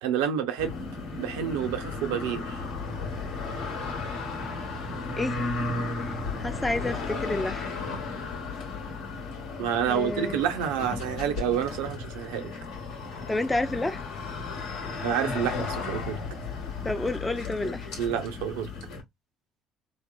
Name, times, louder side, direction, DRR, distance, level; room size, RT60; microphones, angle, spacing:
voice 1, 0.0-0.8 1.2-2.6 9.6-12.5 15.0-16.2 18.0-18.7, right 9 dB, 85° right, 0.6 m, -28 dB
sound 1, 0.6-19.0, left 3 dB, 80° left, 1.0 m, -34 dB
voice 2, 6.0-7.7 9.9-10.4 13.3-14.0 16.8-17.9, left 2 dB, 15° left, 0.4 m, -30 dB
3.2 x 2.0 x 2.4 m
hypercardioid pair, 65°, 0 cm